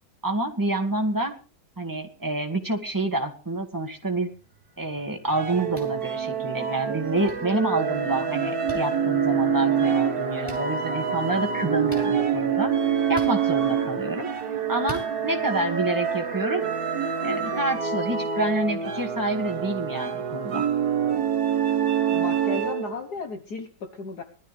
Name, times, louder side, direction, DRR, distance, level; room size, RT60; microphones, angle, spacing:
voice 1, 0.2-1.3 1.8-4.3 4.8-12.7 13.1-14.3 14.7-16.7 17.2-20.7, right 2 dB, 10° right, 2 dB, 2.0 m, -28 dB
sound 1, 5.0-17.6, right 6 dB, 30° right, 1.2 m, -35 dB
sound 2, 5.3-23.0, right 7 dB, 50° right, 1.7 m, -26 dB
sound 3, 5.7-5.9 7.2-7.3 8.7-8.8 10.4-10.6 11.9-12.1 13.1-13.3 14.8-15.1, right 1 dB, 10° left, 5.2 m, -39 dB
voice 2, 22.1-24.2, left 4 dB, 55° left, 5 dB, 1.7 m, -34 dB
20.0 x 13.0 x 3.4 m, 0.34 s
omnidirectional pair, 2.1 m